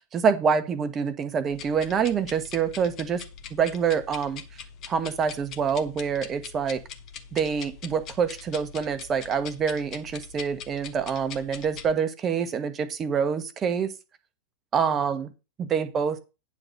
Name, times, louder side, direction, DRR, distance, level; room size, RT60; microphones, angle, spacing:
voice 1, 0.1-3.2 3.5-4.4 4.9-6.8 7.3-13.9 14.7-15.3 15.6-16.2, right 6 dB, 25° right, 10 dB, 1.2 m, -26 dB
sound 1, 1.5-11.9, left 7 dB, 35° left, 1.2 m, -43 dB
9.7 x 4.0 x 6.7 m, 0.29 s
figure-of-eight pair, 90°, 0 cm